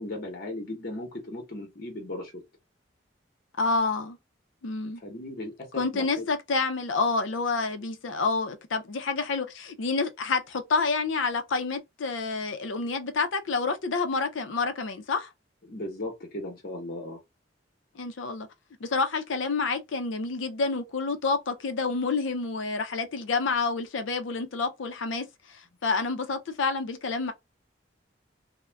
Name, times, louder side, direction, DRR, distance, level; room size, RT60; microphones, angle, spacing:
voice 1, 0.0-2.3 5.0-6.3 15.6-17.2, left 1 dB, 50° left, 0.9 m, -37 dB
voice 2, 3.6-4.2 4.6-5.0 5.8-15.3 18.0-18.5 18.8-27.3, left 4 dB, 80° left, 0.5 m, -28 dB
2.4 x 2.1 x 3.2 m
head